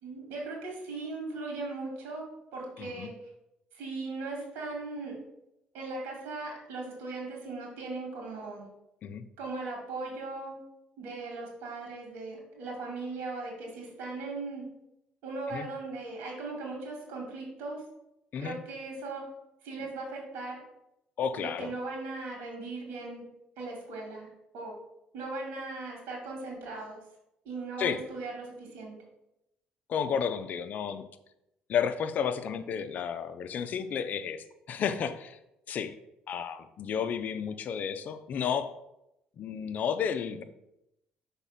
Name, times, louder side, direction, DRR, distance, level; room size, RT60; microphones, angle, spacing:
voice 1, 0.0-2.3 2.5-3.1 3.7-5.2 5.7-8.7 9.4-10.6 11.0-14.7 15.2-17.8 18.4-19.3 19.6-20.6 21.4-23.2 23.6-24.8 25.1-27.0 27.4-29.0, right 3 dB, 80° right, -1 dB, 2.3 m, -38 dB
voice 2, 2.8-3.1 9.0-9.3 15.5-15.7 18.3-18.6 21.2-21.7 27.8-28.0 29.9-31.1 31.7-35.4 35.7-35.9 36.3-38.7 39.4-40.4, left 7 dB, 55° left, 10 dB, 0.6 m, -32 dB
5.8 x 3.6 x 5.7 m, 0.86 s
cardioid pair, 105°, 3 cm